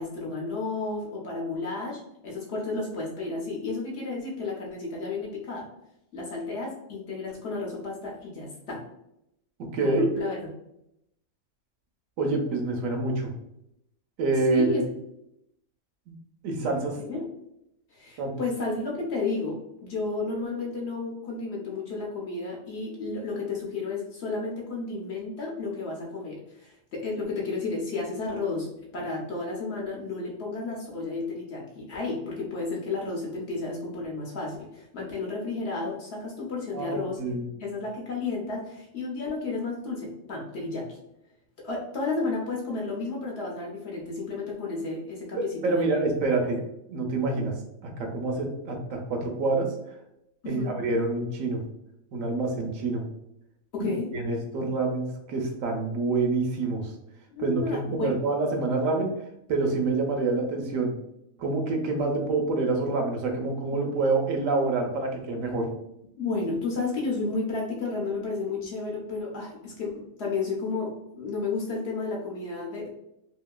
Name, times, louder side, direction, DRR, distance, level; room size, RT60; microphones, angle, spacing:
voice 1, 0.0-5.7 6.1-8.8 9.8-10.4 14.5-14.8 17.1-17.2 17.9-37.2 37.6-41.0 41.6-46.0 50.4-50.7 53.7-54.1 57.3-58.1 65.6-65.7 66.2-72.9, left 3 dB, 60° left, -2 dB, 0.8 m, -32 dB
voice 2, 9.7-10.1 12.2-13.3 14.2-14.8 16.1-16.2 16.4-17.0 18.2-18.4 36.7-37.5 45.3-46.6 46.9-47.5 47.8-49.7 50.4-51.6 52.1-53.0 53.8-56.9 57.4-59.1 59.5-60.9 61.4-65.7, right 3 dB, 75° right, 2 dB, 0.9 m, -27 dB
2.8 x 2.6 x 2.2 m, 0.81 s
omnidirectional pair, 1.5 m